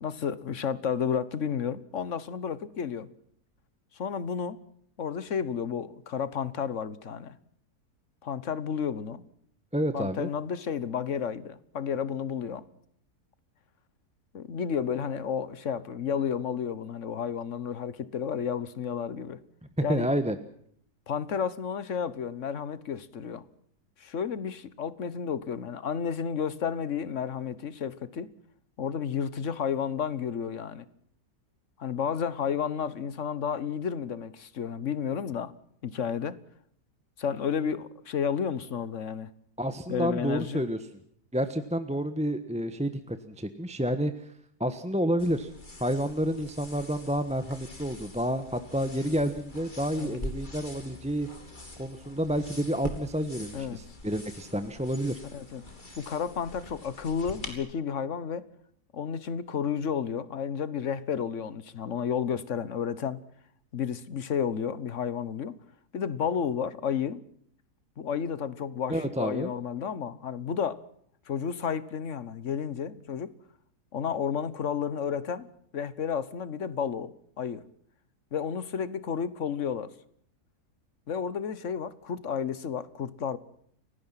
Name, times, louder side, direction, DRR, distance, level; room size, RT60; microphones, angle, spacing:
voice 1, 0.0-3.1 3.9-4.6 5.0-7.3 8.2-9.2 9.9-12.6 14.3-19.4 19.8-20.1 21.1-23.4 24.0-28.3 28.8-30.9 31.8-35.5 35.8-36.4 37.2-39.3 39.9-40.6 50.0-50.2 53.5-53.8 55.3-55.6 56.0-58.5 58.9-63.2 63.7-65.5 65.9-67.2 68.0-70.8 71.3-73.3 73.9-75.5 75.7-77.1 77.4-77.6 78.3-79.9 81.1-83.4, left 7 dB, 55° left, 1.4 m, -31 dB
voice 2, 9.7-10.3 19.8-20.4 39.6-40.8 41.3-44.3 44.6-45.5 45.8-51.3 51.8-55.2 68.9-69.5, equal, 5° right, 1.1 m, -29 dB
sound 1, 45.2-57.5, left 1 dB, 30° left, 3.2 m, -44 dB
29.5 x 16.5 x 5.8 m
omnidirectional pair, 1.7 m